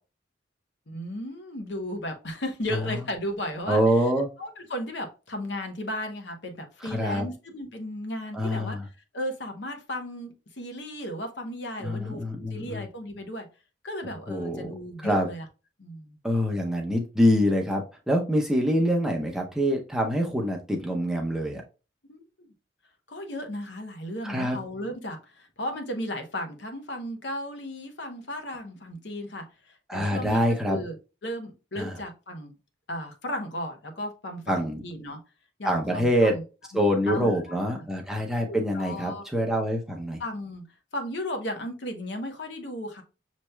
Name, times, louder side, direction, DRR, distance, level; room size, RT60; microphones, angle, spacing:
voice 1, 0.9-4.0 4.4-8.8 9.1-12.2 12.5-13.5 13.8-15.5 15.8-16.2 22.1-22.5 23.1-31.0 31.2-32.5 32.9-35.2 35.6-36.4 36.7-37.9 38.5-39.2 40.2-40.6 40.9-43.0, left 1 dB, 65° left, 5 dB, 0.9 m, -35 dB
voice 2, 3.7-4.3 6.8-7.3 8.3-8.9 11.8-12.8 14.3-14.7 15.0-15.3 16.2-21.6 24.2-24.6 29.9-30.8 31.8-31.9 34.5-34.8 35.6-36.3 36.7-40.2, equal, 5° right, 0 dB, 0.7 m, -25 dB
6.6 x 3.1 x 2.2 m, 0.31 s
head